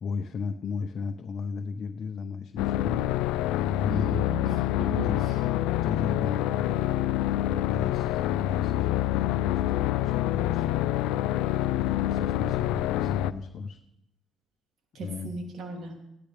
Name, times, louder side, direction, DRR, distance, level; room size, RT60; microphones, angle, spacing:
voice 1, 0.0-3.0 3.7-4.2 4.9-5.2 5.8-6.8 7.5-10.9 11.7-13.8 15.0-15.3, left 5 dB, 55° left, 5 dB, 0.7 m, -35 dB
sound 1, 2.6-13.3, left 13 dB, 90° left, 0.3 m, -26 dB
voice 2, 3.9-5.1 14.9-15.9, right 2 dB, 65° right, 1 dB, 2.8 m, -36 dB
16.0 x 11.5 x 3.4 m, 0.85 s
supercardioid pair, 80°, 0 cm